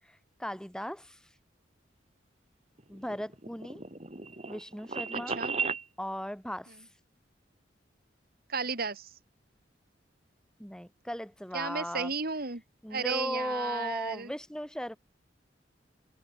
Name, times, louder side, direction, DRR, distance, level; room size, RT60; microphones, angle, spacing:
voice 1, 0.4-1.2 2.9-3.8 4.5-5.4 6.0-6.8 10.6-12.1 12.8-15.0, equal, 5° left, 4.9 m, -37 dB
sound 1, 2.8-5.8, right 5 dB, 35° right, 3.2 m, -35 dB
voice 2, 5.1-5.5 8.5-9.1 11.5-12.6 12.9-14.3, right 4 dB, 55° right, 2.6 m, -34 dB
head